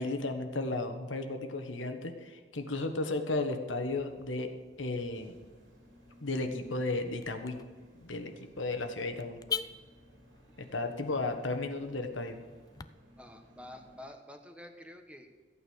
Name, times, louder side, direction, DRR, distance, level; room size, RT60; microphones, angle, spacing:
voice 1, 0.0-4.5 4.8-5.3 6.2-7.6 8.0-9.4 10.7-12.4, left 2 dB, 85° left, 6 dB, 1.4 m, -34 dB
Car / Alarm, 3.7-12.9, left 6 dB, 20° left, 0.4 m, -46 dB
sound 1, 4.9-14.0, equal, 85° right, 3.2 m, -59 dB
voice 2, 13.2-15.3, left 1 dB, 5° right, 5 dB, 1.1 m, -49 dB
14.5 x 8.9 x 6.4 m, 1.4 s
head